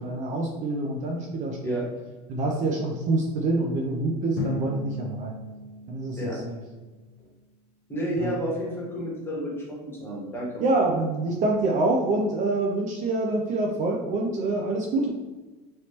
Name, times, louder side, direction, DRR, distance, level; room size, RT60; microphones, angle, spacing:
voice 1, 0.0-1.9 2.3-5.3 5.9-6.6 8.2-8.4 10.6-15.1, right 2 dB, 40° right, 0 dB, 0.4 m, -26 dB
Drum, 4.4-7.1, left 3 dB, 60° left, 0.6 m, -36 dB
voice 2, 7.9-10.8, equal, 10° left, -5 dB, 1.3 m, -31 dB
3.1 x 2.9 x 2.9 m, 1.2 s
supercardioid pair, 125°, 20 cm